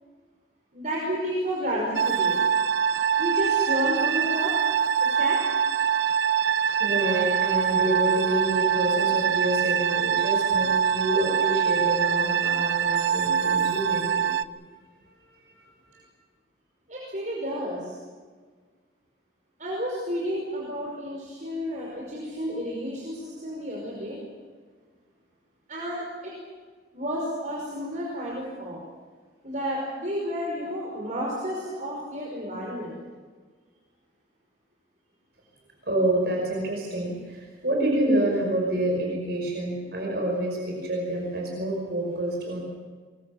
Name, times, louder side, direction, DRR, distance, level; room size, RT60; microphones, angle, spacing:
voice 1, 0.7-2.4 3.2-4.5 5.0-5.4 16.9-18.0 19.6-24.2 25.7-26.3 26.9-28.8 29.4-33.0, equal, 45° right, -3 dB, 5.5 m, -31 dB
sound 1, 1.9-14.4, right 8 dB, 85° right, 0.8 m, -24 dB
voice 2, 6.8-14.3 15.5-15.7 35.9-42.6, right 1 dB, 65° right, -1 dB, 5.6 m, -27 dB
24.0 x 22.5 x 7.2 m, 1.5 s
head